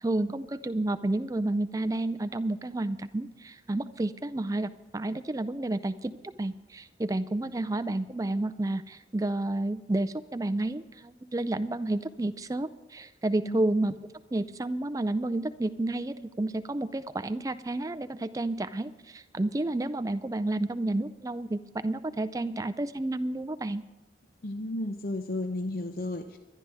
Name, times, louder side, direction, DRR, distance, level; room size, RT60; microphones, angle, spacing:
voice 1, 0.0-14.0 14.3-23.8, right 2 dB, 20° right, 13 dB, 0.4 m, -30 dB
voice 2, 24.4-26.4, left 1 dB, 55° left, 7 dB, 0.6 m, -33 dB
24.0 x 11.0 x 3.5 m, 1.1 s
head